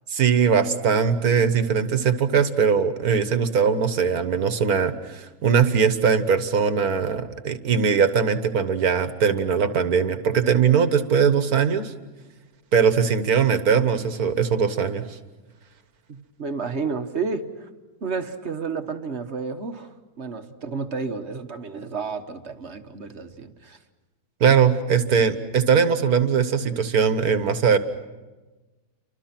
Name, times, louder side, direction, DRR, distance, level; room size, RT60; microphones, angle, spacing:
voice 1, 0.1-11.9 12.7-15.2 24.4-27.8, right 6 dB, 65° right, 10 dB, 1.8 m, -20 dB
voice 2, 16.1-17.7 18.0-23.8, right 4 dB, 45° right, 7 dB, 1.4 m, -31 dB
30.0 x 25.0 x 5.9 m, 1.2 s
omnidirectional pair, 1.7 m